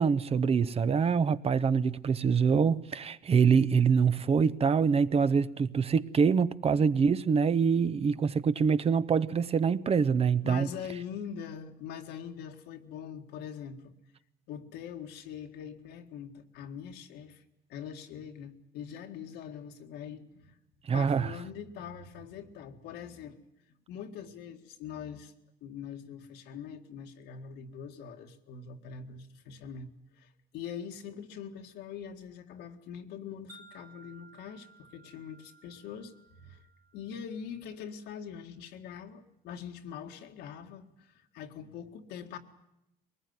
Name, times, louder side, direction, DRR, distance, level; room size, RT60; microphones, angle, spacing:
voice 1, 0.0-10.7 20.8-21.3, right 6 dB, 35° right, 0.8 m, -25 dB
voice 2, 10.4-13.9 14.5-17.4 17.7-20.6 20.9-23.4 23.9-25.3 25.6-36.6 36.9-42.4, left 7 dB, 85° left, 2.0 m, -43 dB
Wind chime, 33.5-37.8, right 2 dB, 70° right, 2.7 m, -58 dB
22.5 x 19.5 x 9.6 m
cardioid pair, 110°, 17 cm